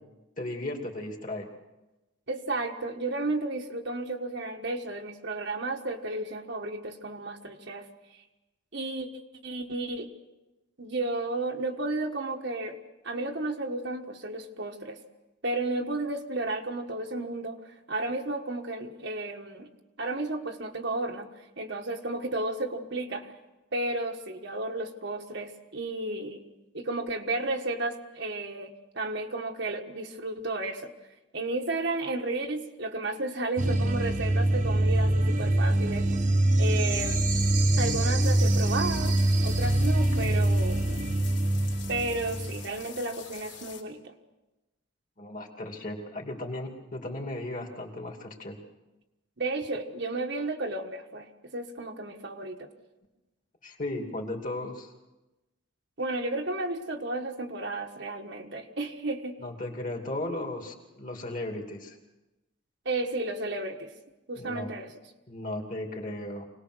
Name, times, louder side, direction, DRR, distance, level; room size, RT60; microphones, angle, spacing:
voice 1, 0.4-1.5 45.2-48.6 53.6-54.9 59.4-62.0 64.4-64.7 65.3-66.5, left 1 dB, 40° left, 3 dB, 2.7 m, -36 dB
voice 2, 2.3-7.9 8.7-9.1 9.4-10.1 10.8-12.8 13.0-15.0 15.4-17.6 17.9-19.7 20.0-21.3 21.6-23.3 23.7-26.4 26.7-30.9 31.3-36.1 36.6-37.2 37.8-39.2 39.4-40.8 41.9-44.1 49.4-52.7 56.0-59.4 62.8-63.9 64.3-64.9, right 2 dB, 55° right, 3 dB, 1.5 m, -33 dB
sound 1, 33.6-42.7, right 1 dB, 35° right, 1.2 m, -24 dB
sound 2, 38.2-43.8, left 8 dB, 60° left, 3.3 m, -46 dB
25.0 x 19.0 x 6.3 m, 1.0 s
head